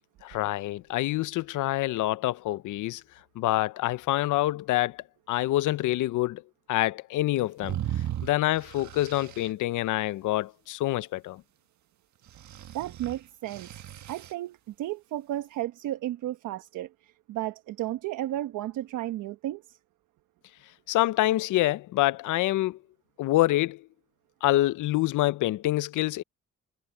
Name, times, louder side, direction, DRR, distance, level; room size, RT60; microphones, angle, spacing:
voice 1, 0.2-3.0 3.4-6.4 6.7-7.8 8.2-11.4 20.9-22.8 23.2-23.8 24.4-26.2, left 16 dB, 80° left, 0.7 m, -26 dB
sound 1, 7.6-9.5 12.3-14.3, right 11 dB, 70° right, 1.7 m, -36 dB
voice 2, 12.7-13.7 14.1-19.8, right 14 dB, 85° right, 1.2 m, -33 dB
cardioid pair, 90°, 30 cm